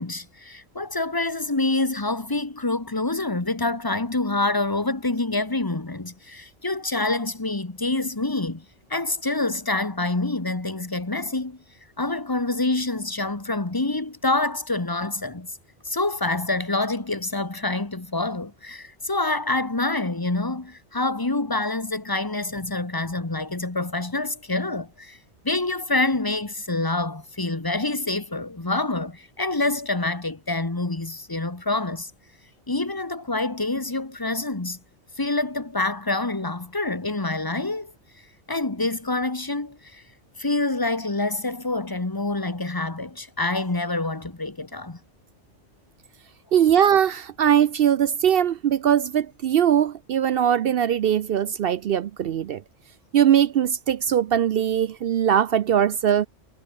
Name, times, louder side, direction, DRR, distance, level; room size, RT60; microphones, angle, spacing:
voice 1, 0.0-8.6 8.9-11.6 12.0-15.6 15.8-25.2 25.4-32.1 32.7-34.8 35.2-37.9 38.5-40.0 40.4-45.0, left 2 dB, 20° left, 1.4 m, -26 dB
voice 2, 46.5-52.6 53.1-56.3, right 9 dB, 60° right, 0.7 m, -21 dB
omnidirectional pair, 1.2 m